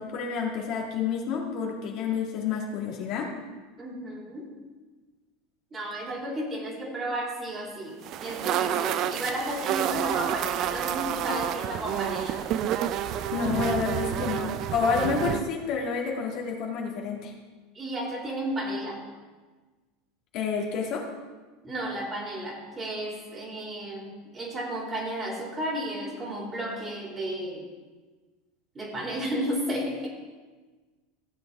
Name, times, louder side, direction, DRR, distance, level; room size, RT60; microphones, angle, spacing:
voice 1, 0.0-3.3 13.3-17.3 20.3-21.1, left 5 dB, 55° left, -1 dB, 2.1 m, -29 dB
voice 2, 3.8-4.5 5.7-12.4 17.7-19.0 21.6-27.6 28.7-30.1, right 1 dB, 25° right, -2 dB, 3.3 m, -33 dB
sound 1, 8.0-15.4, right 10 dB, 50° right, 0.5 m, -29 dB
14.5 x 7.7 x 3.6 m, 1.3 s
hypercardioid pair, 85°, 0 cm